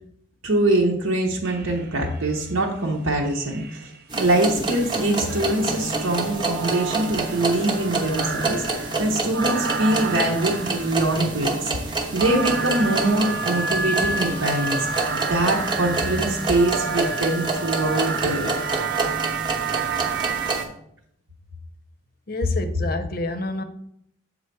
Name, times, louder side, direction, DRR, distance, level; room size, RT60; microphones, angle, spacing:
voice 1, 0.4-18.9, right 1 dB, 80° right, 1.0 m, -24 dB
sound 1, 1.4-2.2 3.2-4.0 4.7-20.6, right 5 dB, 50° right, 0.5 m, -30 dB
sound 2, 4.1-20.6, right 3 dB, 20° right, 0.8 m, -28 dB
sound 3, 4.9-11.2, left 3 dB, 90° left, 0.7 m, -41 dB
voice 2, 22.3-23.6, left 2 dB, 45° left, 0.6 m, -28 dB
7.4 x 4.0 x 4.6 m
head